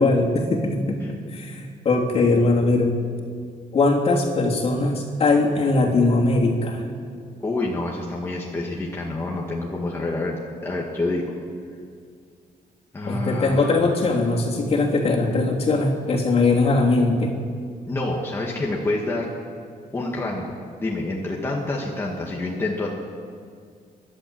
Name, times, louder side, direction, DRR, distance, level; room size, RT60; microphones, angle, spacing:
voice 1, 0.0-2.9 3.7-6.8 13.0-17.3, left 3 dB, 40° left, -1 dB, 3.1 m, -20 dB
voice 2, 7.4-11.3 12.9-13.7 17.9-19.3 19.9-22.9, left 2 dB, 15° left, -3 dB, 1.9 m, -27 dB
28.0 x 12.0 x 7.8 m, 2.2 s
cardioid pair, 170°, 15 cm